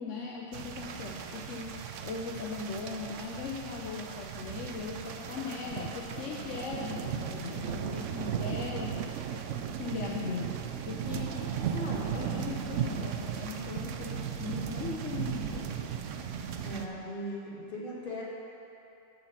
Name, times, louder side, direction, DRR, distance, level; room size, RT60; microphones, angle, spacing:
voice 1, 0.0-1.8 2.0-9.2 9.8-10.6 10.8-15.7, left 5 dB, 75° left, -3 dB, 1.1 m, -39 dB
sound 1, 0.5-16.9, right 7 dB, 80° right, 0.9 m, -36 dB
voice 2, 16.6-18.2, equal, 45° left, -6 dB, 1.8 m, -38 dB
8.2 x 7.0 x 5.7 m, 2.9 s
omnidirectional pair, 1.3 m